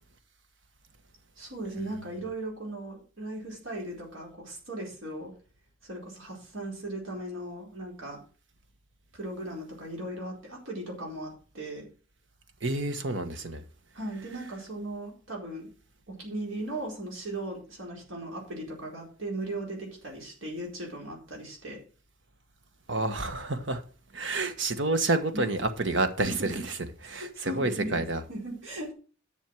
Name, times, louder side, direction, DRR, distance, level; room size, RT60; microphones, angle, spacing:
voice 1, 1.4-5.3 5.8-8.2 9.1-11.9 13.9-15.7 16.1-21.8 25.3-25.5 26.3-26.5 27.3-28.9, right 1 dB, 80° right, 4.4 m, -37 dB
voice 2, 12.6-13.6 22.9-23.8 24.1-26.8 27.1-28.2, right 2 dB, 65° right, 1.4 m, -29 dB
10.5 x 6.4 x 6.2 m
head